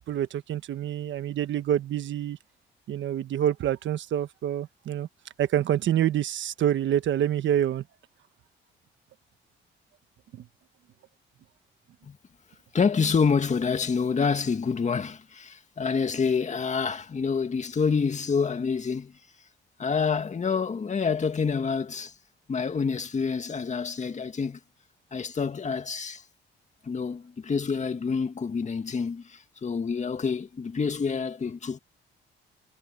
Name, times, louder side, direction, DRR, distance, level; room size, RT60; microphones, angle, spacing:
voice 1, 0.1-2.4 2.9-5.1 5.4-7.8 10.3-10.4, right 10 dB, 70° right, 1.4 m, -27 dB
voice 2, 12.7-19.2 19.8-22.1 22.5-24.6 25.1-26.2 26.8-31.8, left 5 dB, 35° left, 2.1 m, -27 dB
cardioid pair, 90°, 20 cm